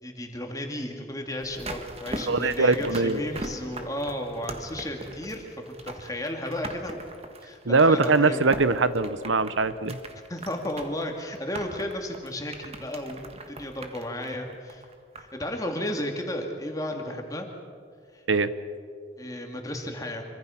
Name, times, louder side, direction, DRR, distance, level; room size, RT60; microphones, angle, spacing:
voice 1, 0.0-7.1 7.4-8.5 10.3-14.9 15.1-17.5 18.1-18.2 19.2-20.2, left 1 dB, 20° left, 3 dB, 2.5 m, -34 dB
sound 1, 1.4-15.4 15.7-15.8, right 2 dB, 30° right, 1.6 m, -40 dB
voice 2, 2.3-3.2 7.7-10.0 18.3-18.5, right 3 dB, 80° right, 13 dB, 0.9 m, -22 dB
26.0 x 24.5 x 5.9 m, 2.3 s
head